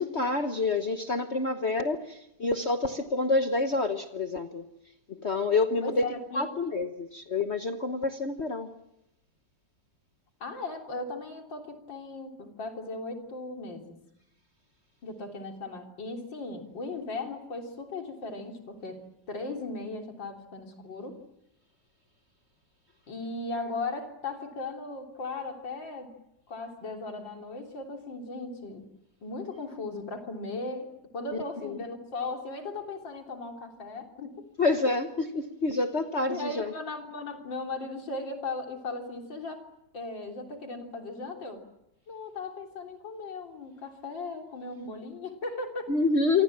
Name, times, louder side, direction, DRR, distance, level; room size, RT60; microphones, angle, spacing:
voice 1, 0.0-4.7 5.1-6.1 6.3-8.7 31.6-31.8 34.6-36.7 45.9-46.4, left 3 dB, 40° left, 1.3 m, -28 dB
voice 2, 5.8-6.5 10.4-14.0 15.0-19.0 19.3-21.2 23.1-26.1 26.5-28.8 29.2-34.4 36.3-39.7 39.9-41.6 42.1-45.9, left 3 dB, 90° left, 4.1 m, -37 dB
28.0 x 24.0 x 7.4 m
omnidirectional pair, 2.0 m